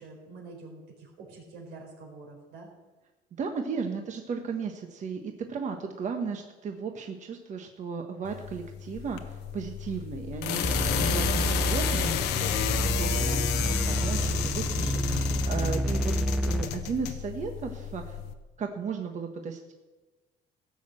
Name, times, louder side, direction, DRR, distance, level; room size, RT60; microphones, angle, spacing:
voice 1, 0.0-2.7, right 3 dB, 90° right, 0 dB, 4.3 m, -46 dB
voice 2, 3.4-16.1 16.4-18.2 18.6-19.7, right 5 dB, 45° right, 4 dB, 1.2 m, -35 dB
sound 1, 8.2-18.3, left 10 dB, 90° left, 1.1 m, -32 dB
sound 2, 10.6-16.6, right 1 dB, ahead, 0.5 m, -28 dB
16.0 x 6.4 x 7.6 m, 1.2 s
cardioid pair, 110°, 17 cm